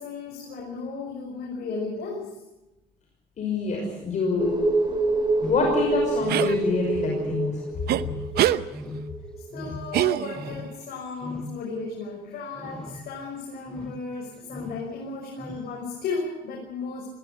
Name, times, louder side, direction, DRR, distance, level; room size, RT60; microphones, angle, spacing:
voice 1, 0.0-2.4 9.5-17.1, left 4 dB, 65° left, 0 dB, 6.2 m, -34 dB
voice 2, 3.4-4.6 5.5-7.6, left 4 dB, 45° left, 0 dB, 5.8 m, -26 dB
sound 1, 4.4-9.6 9.9-10.0, right 2 dB, 25° right, 6.1 m, -27 dB
sound 2, 5.4-5.9 6.2-6.8 7.1-7.6 7.9-8.4 8.7-9.2 9.5-10.0 10.3-10.7 11.2-11.6 12.5-13.1 13.7-14.0 14.5-14.8 15.4-15.7, left 2 dB, 5° left, 1.8 m, -38 dB
sound 3, 6.3-6.5 7.9-8.0 8.4-8.6 9.9-10.6, right 13 dB, 70° right, 0.8 m, -23 dB
21.0 x 16.5 x 9.8 m, 0.99 s
cardioid pair, 110°, 17 cm